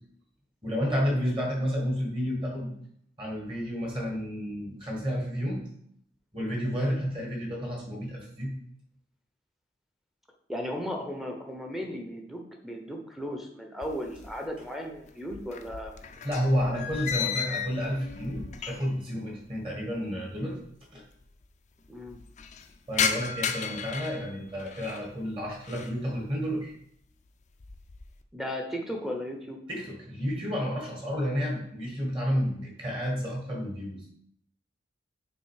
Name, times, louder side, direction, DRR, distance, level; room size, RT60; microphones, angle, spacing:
voice 1, 0.6-2.8 3.2-5.6 6.3-8.5 16.2-20.6 20.9-21.0 22.9-26.7 29.7-34.1, equal, 30° right, -1 dB, 1.5 m, -31 dB
voice 2, 10.5-16.3 21.9-22.2 28.3-29.6, equal, ahead, 1 dB, 0.7 m, -36 dB
sound 1, 13.8-14.7 15.0-19.1 19.3-19.4 20.3-20.4 20.6-20.7 21.0-21.5 21.9-25.1 25.5-26.0 26.5-26.8 27.3-28.2, left 7 dB, 40° left, 0.4 m, -34 dB
6.1 x 3.8 x 4.7 m, 0.70 s
head